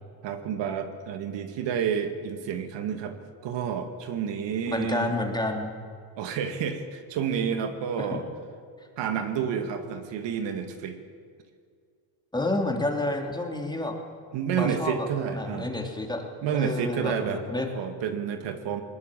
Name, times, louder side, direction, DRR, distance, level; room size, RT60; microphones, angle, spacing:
voice 1, 0.2-3.2 3.4-5.1 6.2-8.3 9.0-11.0 14.3-15.7 16.4-17.4 17.8-18.8, right 7 dB, 65° right, 7 dB, 2.2 m, -29 dB
voice 2, 4.7-5.7 8.0-8.2 12.3-13.9 14.6-15.1 15.3-16.2 16.5-17.7, left 2 dB, 10° left, 2 dB, 3.0 m, -29 dB
20.5 x 20.5 x 7.6 m, 2.3 s
cardioid pair, 110°, 46 cm